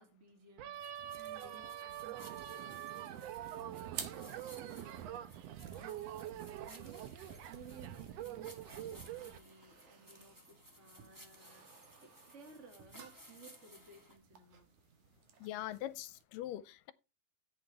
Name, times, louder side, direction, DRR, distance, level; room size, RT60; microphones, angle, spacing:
voice 1, 0.0-14.7, right 3 dB, 25° right, 2.0 m, -59 dB
sound 1, 0.6-9.4, right 11 dB, 85° right, 1.4 m, -45 dB
sound 2, 0.7-14.2, equal, 10° right, 1.6 m, -59 dB
sound 3, 3.4-16.2, right 8 dB, 65° right, 2.8 m, -55 dB
voice 2, 15.4-16.9, left 13 dB, 80° left, 2.2 m, -42 dB
14.0 x 8.5 x 3.3 m
omnidirectional pair, 3.9 m